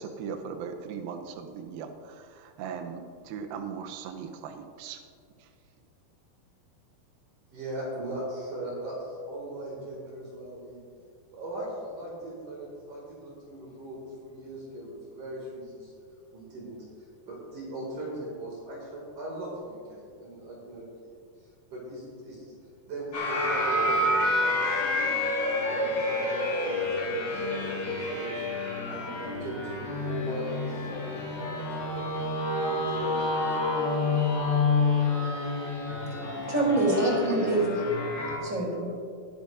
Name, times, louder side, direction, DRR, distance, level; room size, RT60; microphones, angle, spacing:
voice 1, 0.0-5.0 5.4-5.5 37.0-37.7, right 6 dB, 80° right, 5 dB, 2.5 m, -39 dB
voice 2, 7.5-10.8 11.3-15.9 16.3-21.1 21.7-22.5 22.9-24.6 24.9-25.2 25.6-32.0 32.5-33.4 34.1-34.2, right 1 dB, 60° right, -4 dB, 3.6 m, -39 dB
sound 1, 23.1-38.4, left 2 dB, 40° left, 1.9 m, -28 dB
voice 3, 36.5-37.6 38.4-38.9, right 1 dB, 15° right, -3 dB, 2.9 m, -25 dB
20.5 x 10.5 x 2.6 m, 2.4 s
omnidirectional pair, 4.3 m